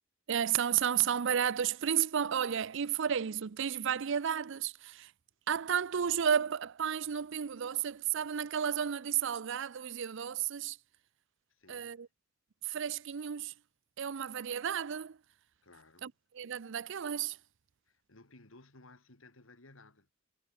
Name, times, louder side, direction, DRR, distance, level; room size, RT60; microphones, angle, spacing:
voice 1, 0.3-5.1 5.5-10.8 11.7-12.1 12.6-13.5 14.0-15.2 16.0-17.4, right 8 dB, 60° right, 0.5 m, -32 dB
voice 2, 11.5-12.0 15.6-16.1 17.9-20.1, left 2 dB, 75° left, 2.9 m, -58 dB
head